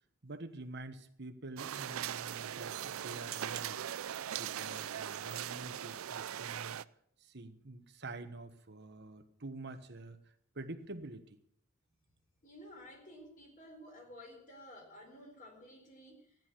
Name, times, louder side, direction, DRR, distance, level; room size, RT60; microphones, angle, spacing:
voice 1, 0.2-3.8 4.4-6.8 7.2-11.4, right 2 dB, 50° right, 8 dB, 1.2 m, -47 dB
sound 1, 1.6-6.8, right 10 dB, 75° right, 0.4 m, -40 dB
voice 2, 12.4-16.5, equal, 40° left, 2 dB, 4.4 m, -53 dB
14.0 x 10.5 x 6.1 m, 0.69 s
head